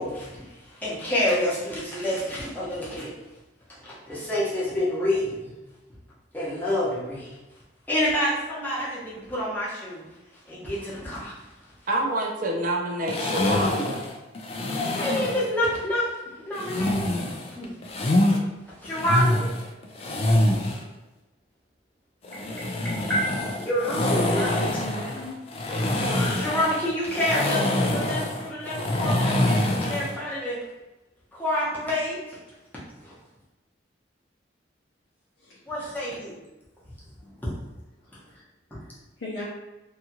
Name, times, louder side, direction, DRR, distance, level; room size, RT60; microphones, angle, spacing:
voice 1, 0.0-3.2 3.7-5.5 6.3-7.4 7.9-10.0 10.5-11.5 14.7-16.2 16.4-17.1 17.6-17.8 18.8-19.5 22.3-24.6 25.7-30.7 31.3-32.4 33.0-33.1 35.7-36.3 37.2-37.5 38.7-38.8, left 1 dB, 10° left, -8 dB, 0.8 m, -28 dB
voice 2, 11.9-14.0, right 1 dB, 45° right, 2 dB, 0.4 m, -27 dB
sound 1, 13.1-15.5 16.6-18.4 18.8-20.8 22.2-30.2, left 1 dB, 35° left, 0.3 m, -25 dB
voice 3, 24.4-25.4 35.4-35.6 39.2-39.4, left 1 dB, 75° left, -6 dB, 0.6 m, -37 dB
2.8 x 2.3 x 2.8 m, 1.1 s
head